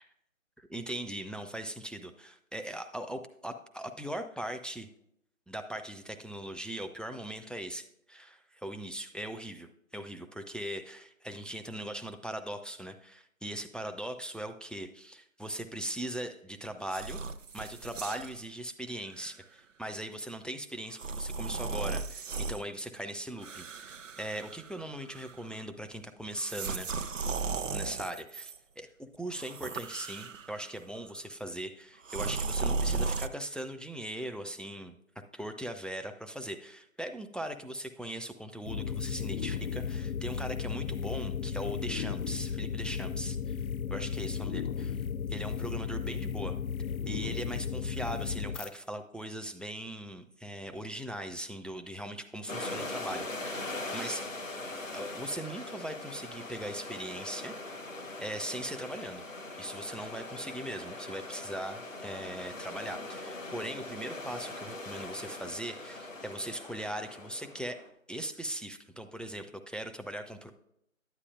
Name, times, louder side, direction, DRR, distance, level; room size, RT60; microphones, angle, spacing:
voice 1, 0.7-4.9 5.5-9.7 9.9-17.2 17.5-26.9 27.7-35.0 35.3-43.6 43.9-45.0 45.3-46.6 47.1-54.3 54.9-57.6 57.9-59.2 59.6-70.5, right 1 dB, ahead, 5 dB, 0.3 m, -40 dB
sound 1, 16.8-18.4 19.1-19.3 20.9-22.6 23.4-24.8 25.1-25.5 26.3-28.6 29.3-30.7 32.0-33.3, right 4 dB, 65° right, 0.5 m, -35 dB
sound 2, 38.6-48.7, left 7 dB, 85° left, 0.5 m, -35 dB
sound 3, 52.5-67.9, left 2 dB, 70° left, 1.1 m, -41 dB
9.6 x 9.2 x 2.4 m, 0.77 s
figure-of-eight pair, 175°, 41 cm